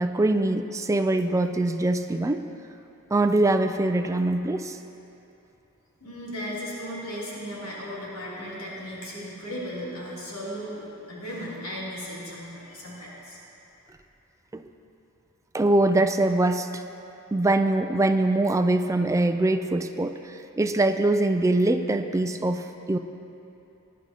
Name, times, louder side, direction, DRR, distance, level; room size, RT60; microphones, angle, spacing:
voice 1, 0.0-2.5 3.1-4.8 14.5-14.6 15.5-16.8 17.3-23.0, right 2 dB, 15° right, 8 dB, 0.3 m, -23 dB
voice 2, 6.0-13.4, equal, 75° left, -7 dB, 3.0 m, -36 dB
19.5 x 10.5 x 2.9 m, 2.9 s
head